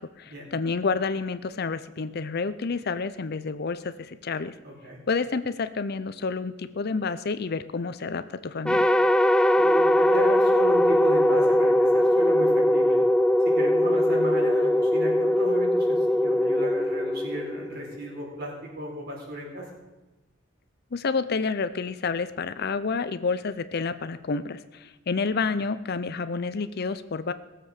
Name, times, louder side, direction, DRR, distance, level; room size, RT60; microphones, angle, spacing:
voice 1, 0.2-4.5 5.1-8.9 20.9-27.3, left 4 dB, 55° left, 12 dB, 0.6 m, -29 dB
voice 2, 4.6-5.0 9.5-13.0 13.4-19.7, equal, 55° right, -2 dB, 4.3 m, -34 dB
sound 1, 8.7-18.0, left 1 dB, 5° left, 0.4 m, -21 dB
18.0 x 7.6 x 6.6 m, 1.1 s
head